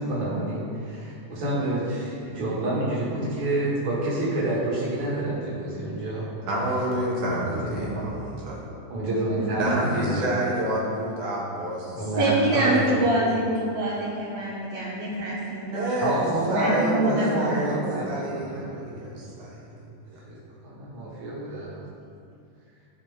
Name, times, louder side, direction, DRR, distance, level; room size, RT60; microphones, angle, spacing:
voice 1, 0.0-6.4 7.6-8.1 8.9-10.3 11.9-12.8 16.0-18.8 20.3-20.4 20.6-21.9, right 1 dB, 40° right, -7 dB, 2.6 m, -28 dB
voice 2, 6.5-8.6 9.6-12.0 12.4-13.4 15.7-16.2 16.5-17.8 18.1-19.7 20.1-20.2, right 1 dB, 75° right, -4 dB, 2.7 m, -29 dB
voice 3, 12.2-15.9 16.2-18.1, right 1 dB, 60° right, -8 dB, 2.4 m, -26 dB
14.5 x 4.9 x 3.7 m, 2.5 s
omnidirectional pair, 3.7 m